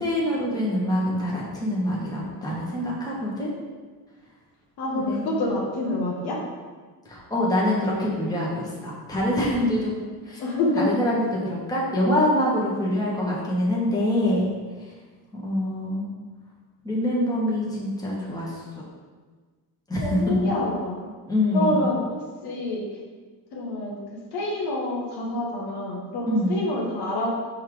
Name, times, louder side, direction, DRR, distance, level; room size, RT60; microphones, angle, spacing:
voice 1, 0.0-3.5 4.9-5.2 7.0-9.9 10.3-10.4 10.7-14.5 15.3-16.1 16.8-18.5 19.9-20.5 21.3-21.8 26.3-26.6, left 1 dB, 10° left, -5 dB, 1.4 m, -25 dB
voice 2, 4.8-6.4 10.4-10.9 20.0-21.1 21.5-22.2 22.4-22.8 23.5-24.0 24.3-27.3, left 1 dB, 75° left, -2 dB, 1.4 m, -27 dB
5.6 x 3.7 x 5.0 m, 1.4 s
cardioid pair, 130°, 40 cm